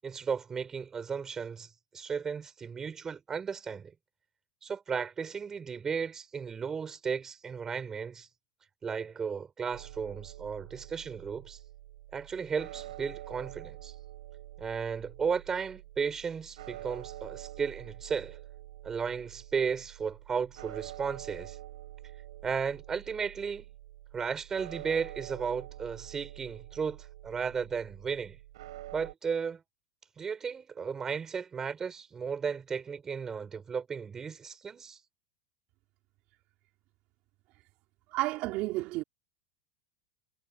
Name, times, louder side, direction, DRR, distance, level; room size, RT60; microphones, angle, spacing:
voice 1, 0.0-1.7 1.9-3.9 4.6-8.3 8.8-11.6 12.1-13.9 14.6-18.4 18.8-21.6 22.4-23.7 24.1-28.4 28.9-29.6 30.2-35.0, right 6 dB, 15° right, 6.0 m, -34 dB
sound 1, 9.7-29.1, right 15 dB, 85° right, 5.9 m, -47 dB
voice 2, 38.1-39.0, right 19 dB, 45° right, 4.0 m, -31 dB
supercardioid pair, 160°, 3 cm